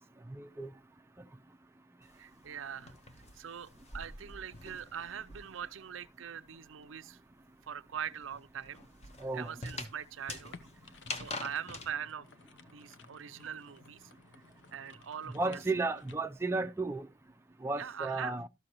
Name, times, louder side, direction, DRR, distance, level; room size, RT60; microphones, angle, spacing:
voice 1, 0.3-0.7 9.2-9.5 15.3-17.1 17.6-18.5, right 3 dB, 15° right, 0.4 m, -33 dB
sound 1, 2.0-5.8 6.0-11.9, left 2 dB, 35° left, 1.1 m, -45 dB
voice 2, 2.2-2.9 3.3-7.2 7.7-8.9 9.3-10.5 11.1-12.3 12.7-14.0 14.7-15.6 17.8-18.4, right 8 dB, 80° right, 0.5 m, -42 dB
sound 2, 10.5-16.2, left 4 dB, 65° left, 0.8 m, -56 dB
12.5 x 6.5 x 2.9 m
head